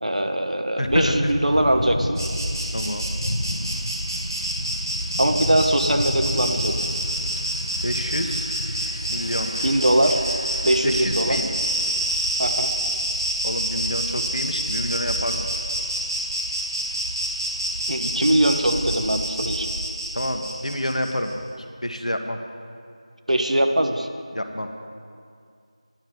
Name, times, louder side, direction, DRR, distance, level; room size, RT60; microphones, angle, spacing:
voice 1, 0.0-2.2 5.2-6.9 9.6-10.2 10.6-11.4 12.4-12.7 17.9-19.7 23.3-24.1, right 1 dB, 75° right, 5 dB, 1.2 m, -21 dB
voice 2, 0.8-1.3 2.7-3.1 7.8-8.5 9.1-9.5 10.8-11.5 13.4-15.5 20.1-21.4 21.8-22.4 24.3-24.7, left 1 dB, 75° left, 5 dB, 1.2 m, -28 dB
Thunder / Bicycle, 0.8-18.0, left 1 dB, 45° left, 1.0 m, -34 dB
Insect, 2.1-21.3, right 1 dB, 35° right, 1.9 m, -28 dB
10.5 x 6.9 x 7.8 m, 2.3 s
figure-of-eight pair, 170°, 4 cm